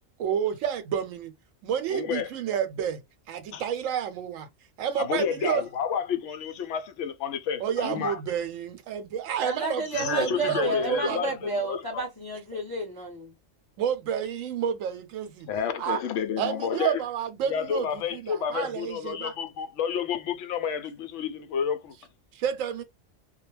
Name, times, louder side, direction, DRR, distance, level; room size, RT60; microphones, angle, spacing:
voice 1, 0.2-1.3 1.6-3.0 3.3-4.5 4.8-5.6 7.6-11.6 13.8-15.5 15.8-16.0 16.4-19.3 22.3-22.8, right 8 dB, 90° right, 1.0 m, -30 dB
voice 2, 1.9-2.3 3.5-3.6 5.0-8.2 9.9-12.1 15.5-17.0 17.5-21.9, left 7 dB, 70° left, 0.8 m, -30 dB
voice 3, 9.4-13.3, right 2 dB, 20° left, 0.7 m, -32 dB
2.3 x 2.1 x 3.1 m
omnidirectional pair, 1.3 m